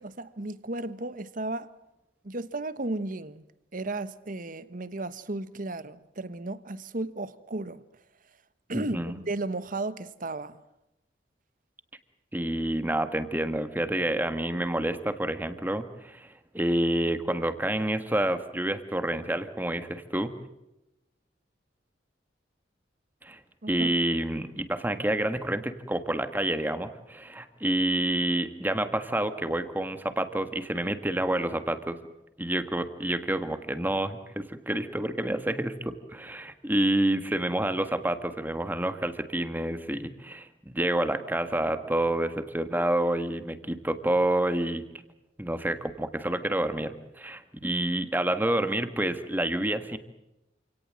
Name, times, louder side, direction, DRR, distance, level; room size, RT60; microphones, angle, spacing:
voice 1, 0.0-1.7 2.2-3.4 3.7-7.8 8.7-9.0 9.3-10.6 23.6-23.9, right 2 dB, 50° right, 1.1 m, -34 dB
voice 2, 8.7-9.1 12.3-20.3 23.2-23.4 23.7-32.0 32.4-44.8 45.4-50.0, right 1 dB, 10° right, 1.6 m, -28 dB
28.0 x 18.0 x 7.6 m
head